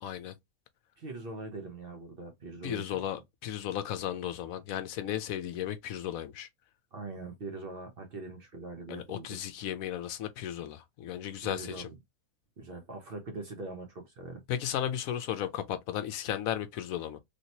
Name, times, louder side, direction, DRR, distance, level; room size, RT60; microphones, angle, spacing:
voice 1, 0.0-0.3 2.6-6.5 8.9-11.9 14.5-17.2, left 10 dB, 75° left, 0.9 m, -35 dB
voice 2, 1.0-2.9 6.9-9.4 11.4-11.9 12.6-14.4, right 3 dB, 45° right, 0.9 m, -42 dB
3.2 x 2.8 x 2.8 m
omnidirectional pair, 1.5 m